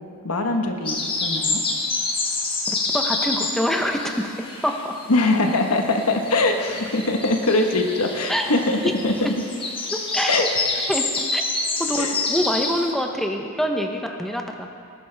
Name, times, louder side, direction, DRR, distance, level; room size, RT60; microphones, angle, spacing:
voice 1, 0.2-1.6 5.1-8.8 9.0-9.3 10.3-10.5 12.0-12.1, left 2 dB, 90° left, 4 dB, 1.3 m, -22 dB
sound 1, 0.8-5.2 5.4-12.9, left 3 dB, 25° left, 1.4 m, -27 dB
voice 2, 2.7-5.0 8.3-9.3 9.9-10.5 10.9-11.5 11.8-14.7, equal, ahead, 2 dB, 0.8 m, -26 dB
20.0 x 11.0 x 3.4 m, 2.4 s
head